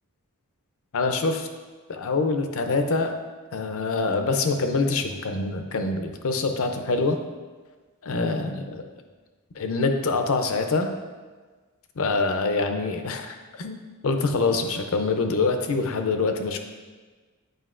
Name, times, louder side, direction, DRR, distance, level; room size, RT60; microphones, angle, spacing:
voice 1, 0.9-1.5 1.9-3.1 3.5-7.2 8.0-8.8 9.6-10.9 12.0-16.6, left 3 dB, 65° left, 6 dB, 0.5 m, -25 dB
7.8 x 4.8 x 2.5 m, 1.4 s
head